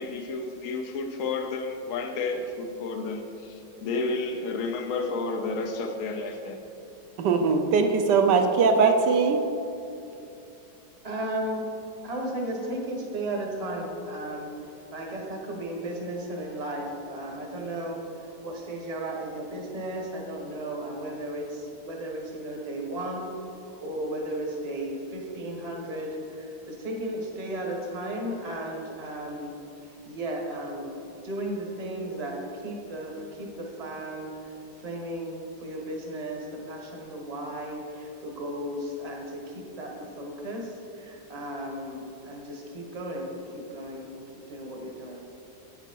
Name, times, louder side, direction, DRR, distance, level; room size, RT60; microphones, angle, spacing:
voice 1, 0.0-6.6, left 3 dB, 75° left, 3 dB, 0.7 m, -31 dB
voice 2, 7.2-9.4, right 5 dB, 70° right, 6 dB, 1.2 m, -21 dB
voice 3, 11.0-11.7 12.0-14.5 14.9-18.0 18.4-23.3 23.8-29.5 30.1-34.3 34.8-45.2, right 1 dB, 25° right, 0 dB, 0.9 m, -35 dB
9.0 x 7.0 x 4.5 m, 2.7 s
omnidirectional pair, 2.1 m